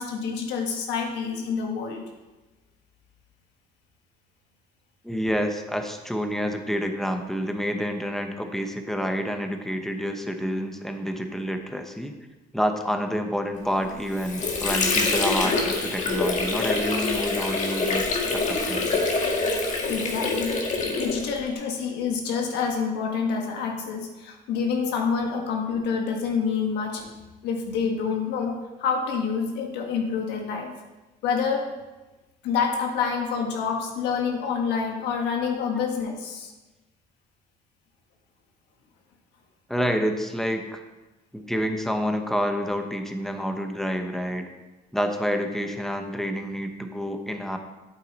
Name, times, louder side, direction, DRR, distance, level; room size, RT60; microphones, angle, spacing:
voice 1, 0.0-2.0 19.9-20.6 21.0-27.1 27.4-30.7 31.2-31.7 32.4-36.5, left 6 dB, 85° left, 2 dB, 1.6 m, -27 dB
voice 2, 5.0-12.2 12.5-18.0 18.3-19.1 34.4-34.5 35.7-35.9 39.7-40.8 41.3-44.5 44.9-47.6, equal, ahead, 5 dB, 1.0 m, -28 dB
Water / Sink (filling or washing), 13.8-21.5, left 3 dB, 45° left, 1.7 m, -25 dB
8.4 x 8.2 x 4.2 m, 1.1 s
cardioid pair, 110°, 17 cm